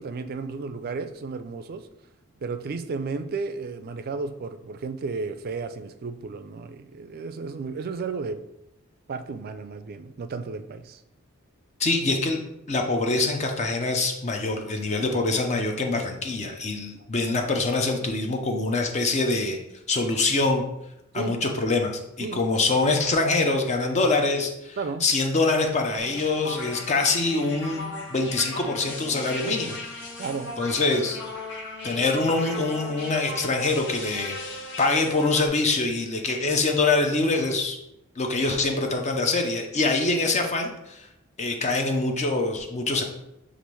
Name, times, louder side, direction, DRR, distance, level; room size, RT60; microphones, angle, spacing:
voice 1, 0.0-1.9 2.4-8.4 9.1-11.0 21.1-21.4 22.2-22.5 24.8-25.1 30.2-30.5 32.0-32.1, right 4 dB, 45° right, 9 dB, 0.3 m, -33 dB
voice 2, 11.8-12.4 12.7-19.6 19.9-20.6 21.1-21.9 22.2-27.8 28.1-29.8 30.6-31.2 31.8-34.4 34.8-37.8 38.2-41.1 41.4-43.0, left 3 dB, 30° left, 3 dB, 0.5 m, -24 dB
sound 1, 26.0-35.5, left 2 dB, 55° left, 0.9 m, -37 dB
6.8 x 2.5 x 3.1 m, 0.86 s
head